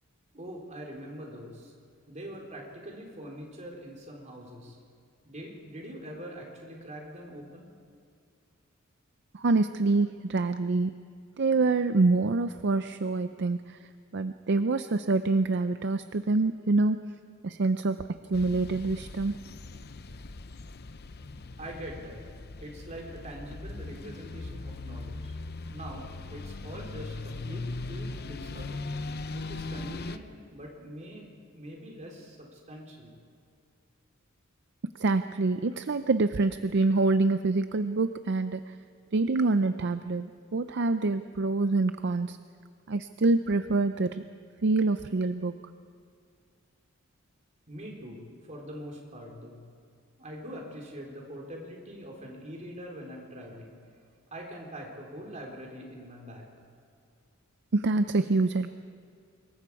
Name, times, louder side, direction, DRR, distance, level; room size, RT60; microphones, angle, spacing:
voice 1, 0.3-1.7 2.1-4.8 5.2-7.7 21.6-22.2 22.6-25.4 25.7-28.8 29.3-33.1 47.7-48.2 48.5-49.6 50.2-53.8 54.3-56.5, equal, 35° right, 0 dB, 3.8 m, -43 dB
voice 2, 9.3-10.9 11.4-13.8 14.1-17.0 17.4-19.4 35.0-38.6 39.1-42.4 42.9-44.2 44.6-45.5 57.7-58.7, right 3 dB, 55° right, 10 dB, 0.5 m, -26 dB
sound 1, 18.3-30.2, left 3 dB, 50° left, 0.7 m, -39 dB
26.0 x 22.0 x 4.8 m, 2.3 s
head